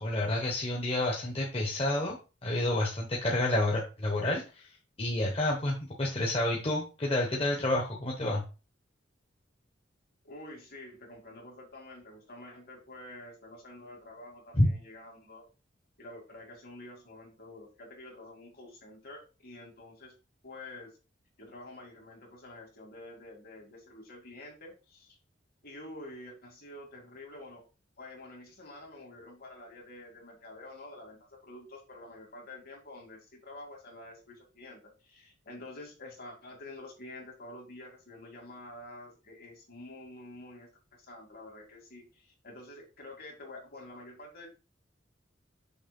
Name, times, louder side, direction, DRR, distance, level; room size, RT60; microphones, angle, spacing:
voice 1, 0.0-2.2 2.4-8.4 14.5-14.7, left 1 dB, 30° left, -2 dB, 1.2 m, -29 dB
voice 2, 10.2-15.4 16.0-20.1 20.4-21.0 21.4-25.2 25.6-27.6 28.0-44.5, left 2 dB, 55° left, 0 dB, 2.6 m, -48 dB
6.4 x 3.1 x 5.3 m, 0.32 s
head